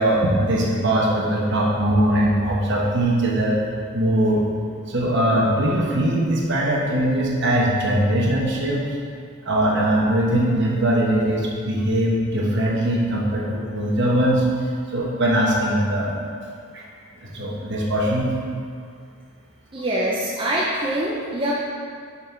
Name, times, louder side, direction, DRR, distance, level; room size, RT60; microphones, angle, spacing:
voice 1, 0.0-3.6 3.9-4.5 4.9-8.8 9.4-14.4 14.9-16.1 16.7-16.8 17.2-18.3, right 1 dB, 55° right, -3 dB, 1.2 m, -21 dB
voice 2, 19.7-21.5, right 1 dB, 20° right, -6 dB, 0.6 m, -24 dB
5.7 x 5.7 x 4.6 m, 2.2 s
head